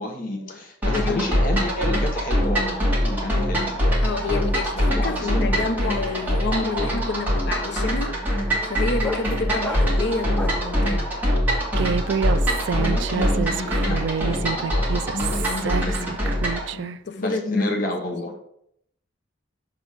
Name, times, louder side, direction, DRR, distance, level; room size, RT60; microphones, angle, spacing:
voice 1, 0.0-3.8 4.7-5.6 12.8-16.5 17.2-18.3, left 1 dB, 45° left, 1.1 m, -30 dB
sound 1, 0.8-16.7, equal, 10° right, 1.9 m, -23 dB
voice 2, 0.9-1.3 4.0-11.1 16.7-17.8, left 3 dB, 60° left, 0.7 m, -29 dB
sound 2, 4.0-4.3 4.5-10.8, left 1 dB, 5° left, 0.6 m, -36 dB
Human voice, 11.8-17.0, right 7 dB, 65° right, 0.3 m, -28 dB
6.9 x 3.5 x 6.3 m
head